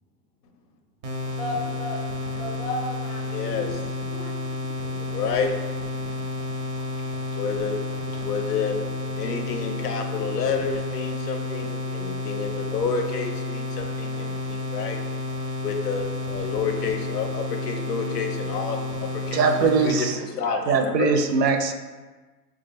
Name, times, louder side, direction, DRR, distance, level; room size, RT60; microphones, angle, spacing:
sound 1, 1.0-20.1, left 2 dB, 30° right, 0.4 m, -31 dB
voice 1, 1.4-3.8 4.1-4.7, left 1 dB, 30° left, 1 dB, 0.4 m, -34 dB
voice 2, 3.3-3.8 4.8-5.5 7.3-7.8 8.2-8.7 9.2-15.0 15.6-19.4 19.8-20.1 20.4-21.1, left 5 dB, 75° left, 5 dB, 0.6 m, -29 dB
voice 3, 19.3-20.2 20.7-21.7, right 5 dB, 85° right, 7 dB, 0.5 m, -21 dB
3.4 x 2.2 x 3.4 m, 1.3 s
hypercardioid pair, 110°, 48 cm